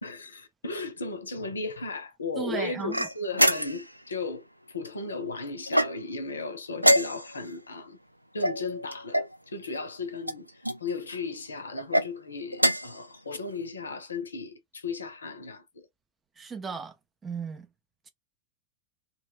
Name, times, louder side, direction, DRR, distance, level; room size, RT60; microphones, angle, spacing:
voice 1, 0.0-8.0 8.3-15.9, left 3 dB, 75° left, 0.5 m, -36 dB
voice 2, 2.4-3.1 16.4-16.9 17.2-17.7, right 5 dB, 15° right, 0.4 m, -35 dB
sound 1, 2.9-4.0 5.7-6.3 6.8-7.5 8.4-9.4 10.2-10.8 11.7-12.1 12.5-13.0, equal, 90° right, 0.4 m, -25 dB
2.2 x 2.2 x 3.3 m
figure-of-eight pair, 90°, 0 cm